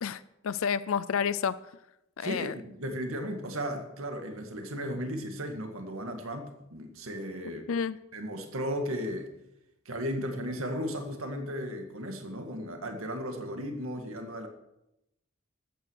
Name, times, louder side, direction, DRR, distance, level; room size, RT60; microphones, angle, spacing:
voice 1, 0.0-1.5 2.2-2.5 7.7-8.0, left 7 dB, 70° left, 16 dB, 0.4 m, -30 dB
voice 2, 2.2-7.6 8.1-9.3 9.9-14.5, equal, 75° right, 5 dB, 1.9 m, -35 dB
14.0 x 9.4 x 6.4 m, 0.87 s
head